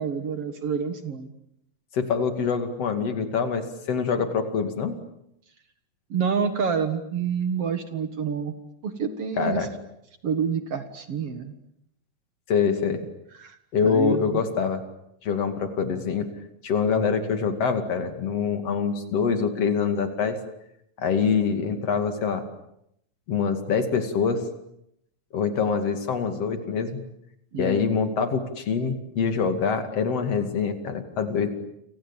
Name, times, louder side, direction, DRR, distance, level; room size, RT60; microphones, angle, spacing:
voice 1, 0.0-1.3 6.1-8.5 8.8-9.7 10.2-11.5 13.4-13.6 13.8-14.4 27.5-27.9, right 6 dB, 50° right, 9 dB, 2.2 m, -28 dB
voice 2, 1.9-4.9 9.4-9.7 12.5-13.0 13.7-14.8 15.2-16.3 16.6-20.4 21.0-22.4 23.3-24.4 25.3-27.0 27.6-31.5, left 6 dB, 50° left, 7 dB, 3.2 m, -25 dB
30.0 x 26.0 x 7.3 m, 0.78 s
omnidirectional pair, 4.0 m